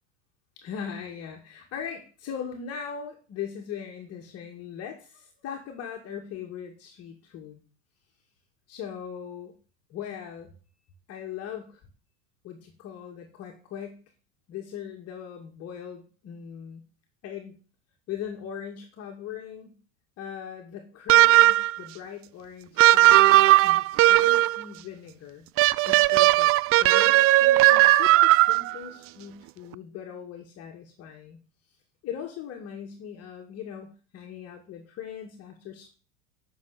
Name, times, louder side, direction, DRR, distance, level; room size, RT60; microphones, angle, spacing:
voice 1, 0.6-7.6 8.7-9.5 9.9-10.5 11.1-11.8 12.4-14.0 14.5-16.8 17.2-17.6 18.1-19.8 20.2-25.4 25.8-26.5 26.8-31.4 32.0-35.9, left 8 dB, 45° left, 2 dB, 2.2 m, -39 dB
sound 1, 21.1-21.8 22.8-24.6 25.6-28.8, right 16 dB, 40° right, 0.5 m, -17 dB
9.5 x 6.5 x 8.2 m, 0.38 s
hypercardioid pair, 100°, 36 cm